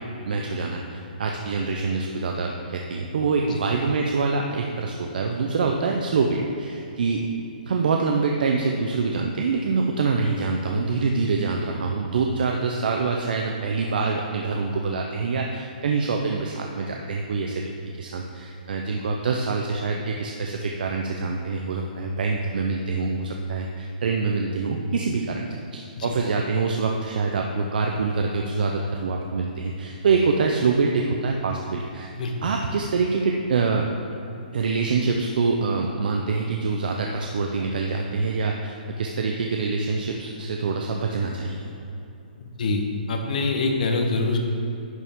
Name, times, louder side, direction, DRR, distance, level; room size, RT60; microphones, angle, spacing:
voice 1, 0.2-7.3 7.7-17.7 18.0-32.1 32.4-33.9 34.5-41.7, right 4 dB, 65° right, 1 dB, 0.7 m, -25 dB
voice 2, 42.4-42.8 43.1-44.4, left 3 dB, 60° left, 3 dB, 1.3 m, -24 dB
11.0 x 6.9 x 3.7 m, 2.9 s
hypercardioid pair, 150°, 5 cm